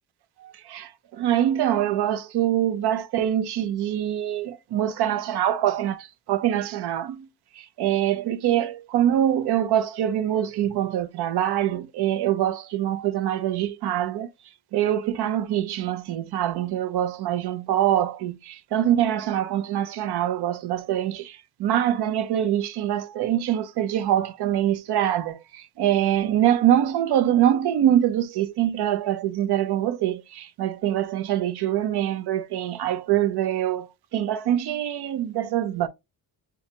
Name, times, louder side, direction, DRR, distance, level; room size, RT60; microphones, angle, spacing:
voice 1, 0.4-7.3 7.6-14.3 14.7-35.9, right 11 dB, 65° right, 0.6 m, -24 dB
6.9 x 2.3 x 2.8 m
cardioid pair, 80°, 43 cm